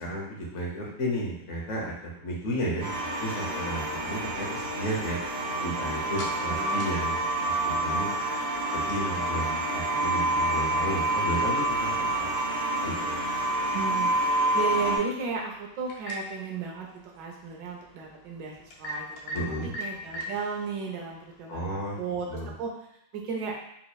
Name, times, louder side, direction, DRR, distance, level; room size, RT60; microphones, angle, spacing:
voice 1, 0.0-1.9 2.2-5.2 5.6-7.2 7.4-8.1 8.7-12.3 12.8-13.1 19.3-19.7 21.5-22.0 22.3-22.5, equal, 60° left, -3 dB, 0.8 m, -33 dB
sound 1, 2.8-15.0, right 1 dB, 30° right, 1.2 m, -28 dB
sound 2, 5.4-21.7, left 1 dB, 90° left, 1.6 m, -45 dB
voice 2, 6.2-7.0 13.7-14.1 14.5-22.7 23.1-23.6, right 5 dB, 70° right, 0 dB, 1.2 m, -35 dB
4.1 x 2.9 x 2.3 m, 0.78 s
omnidirectional pair, 2.4 m